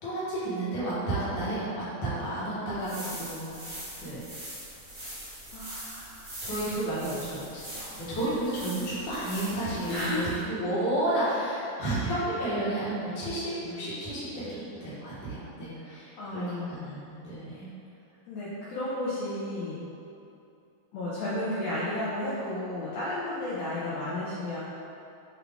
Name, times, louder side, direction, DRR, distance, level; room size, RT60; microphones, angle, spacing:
voice 1, 0.0-4.3 6.4-17.7, right 1 dB, 50° left, -10 dB, 1.6 m, -32 dB
sound 1, 2.6-10.4, right 1 dB, 30° right, 0.7 m, -42 dB
voice 2, 5.5-6.4 9.9-10.4 15.8-16.8 18.3-19.9 20.9-24.6, left 1 dB, 75° left, -9 dB, 1.7 m, -33 dB
5.7 x 2.4 x 3.4 m, 2.7 s
omnidirectional pair, 3.3 m